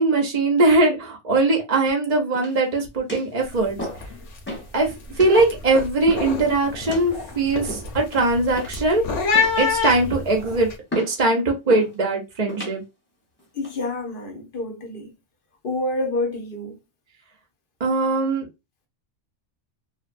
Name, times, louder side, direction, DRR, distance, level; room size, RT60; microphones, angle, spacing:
voice 1, 0.0-3.8 4.7-4.9 5.2-9.0 9.6-10.7 11.0-12.8 17.8-18.5, right 2 dB, 45° right, 0.6 m, -20 dB
sound 1, 2.3-2.7 3.1-3.3 3.8-4.1 4.5-4.7 5.2-5.4 6.1-6.4 6.9-7.1 7.7-8.1 8.6-8.9 9.3-9.7 10.1-10.4 10.9-11.2 11.7-11.9 12.5-12.8 13.4-13.7, equal, 10° left, 1.0 m, -34 dB
sound 2, 3.4-3.7 3.9-4.4 4.8-10.7, left 5 dB, 85° left, 1.0 m, -27 dB
voice 2, 13.5-15.1 15.6-16.8, left 2 dB, 55° left, 0.8 m, -28 dB
2.6 x 2.1 x 2.5 m
omnidirectional pair, 1.2 m